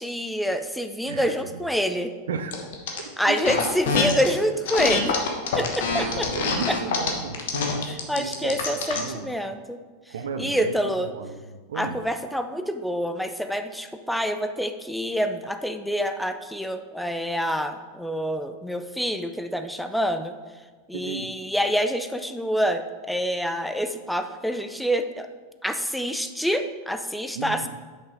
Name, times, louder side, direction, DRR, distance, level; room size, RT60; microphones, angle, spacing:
voice 1, 0.0-2.1 3.2-5.2 5.6-6.3 6.7-6.8 7.8-9.8 10.4-11.1 11.7-20.4 20.9-25.3 25.6-27.7, equal, ahead, 8 dB, 0.5 m, -27 dB
voice 2, 1.1-1.6 2.3-2.6 3.3-3.7 5.9-9.3 10.1-10.8 11.0-12.0 20.9-21.4 27.4-27.7, right 5 dB, 70° right, 9 dB, 0.6 m, -34 dB
sound 1, 2.5-3.0 3.4-4.3 4.6-9.1, left 5 dB, 65° left, 1.2 m, -25 dB
6.6 x 5.6 x 4.9 m, 1.4 s
figure-of-eight pair, 90°, 0 cm